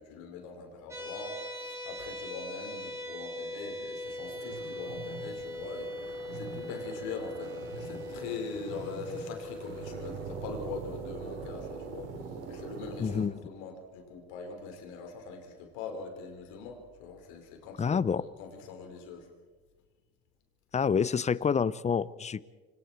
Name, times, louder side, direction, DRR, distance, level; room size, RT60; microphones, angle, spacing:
voice 1, 0.0-19.3, left 5 dB, 75° left, 3 dB, 5.2 m, -42 dB
sound 1, 0.9-12.1, left 1 dB, 10° right, 6.2 m, -41 dB
sound 2, 4.0-13.3, right 5 dB, 85° right, 4.5 m, -43 dB
voice 2, 13.0-13.3 17.8-18.2 20.7-22.4, left 6 dB, 20° left, 19 dB, 0.7 m, -27 dB
28.5 x 24.5 x 4.6 m, 1.4 s
supercardioid pair, 85°, 34 cm